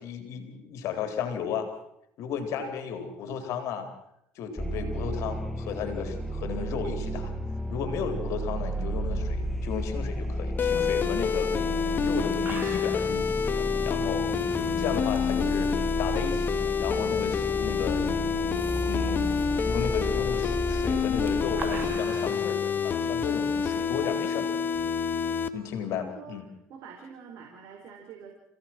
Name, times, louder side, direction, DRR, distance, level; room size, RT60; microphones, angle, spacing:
voice 1, 0.0-1.7 2.2-3.9 4.4-7.3 7.7-11.5 12.0-14.3 14.8-15.7 16.0-18.2 18.9-19.3 19.7-24.5 25.5-26.4, left 7 dB, 65° left, 7 dB, 4.1 m, -34 dB
sound 1, 4.6-22.0, equal, ahead, 1.5 m, -33 dB
sound 2, 10.6-25.5, left 6 dB, 40° left, 1.7 m, -28 dB
sound 3, 12.0-12.1 12.3-13.2 14.3-16.0 16.9-17.2 17.5-17.6 18.3-19.5 20.9-22.5 23.6-23.8, right 6 dB, 35° right, 1.9 m, -44 dB
voice 2, 25.5-26.4 26.7-28.3, right 6 dB, 65° right, 1 dB, 4.7 m, -46 dB
29.0 x 17.0 x 6.2 m, 0.80 s
supercardioid pair, 95°, 5 cm